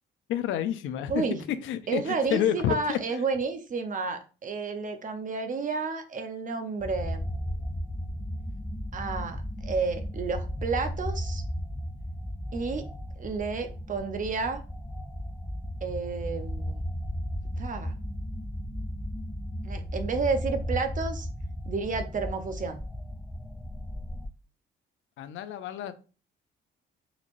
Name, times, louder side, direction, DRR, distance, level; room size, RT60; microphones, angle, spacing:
voice 1, 0.3-3.0 25.2-25.9, left 10 dB, 80° left, 11 dB, 0.5 m, -29 dB
voice 2, 1.1-1.4 1.9-7.2 8.9-11.4 12.5-12.8 13.2-14.6 15.8-16.8 17.6-17.9 19.6-21.3 21.7-22.8, right 4 dB, 40° right, 7 dB, 0.7 m, -31 dB
sound 1, 6.8-24.3, equal, 5° left, 0.4 m, -35 dB
4.0 x 3.0 x 2.5 m, 0.34 s
cardioid pair, 90°, 20 cm